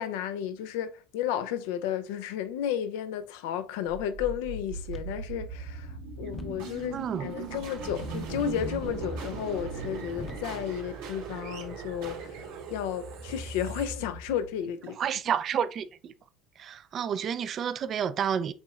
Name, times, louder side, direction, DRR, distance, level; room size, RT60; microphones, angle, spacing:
voice 1, 0.0-15.0, left 9 dB, 80° left, 0.4 m, -33 dB
sound 1, 3.9-14.9, right 4 dB, 90° right, 2.2 m, -39 dB
sound 2, 4.9-12.3, left 2 dB, 35° left, 0.6 m, -48 dB
voice 2, 6.9-7.3 15.0-16.1 16.6-18.5, right 8 dB, 45° right, 0.4 m, -30 dB
7.2 x 3.0 x 2.3 m
supercardioid pair, 85°, 0 cm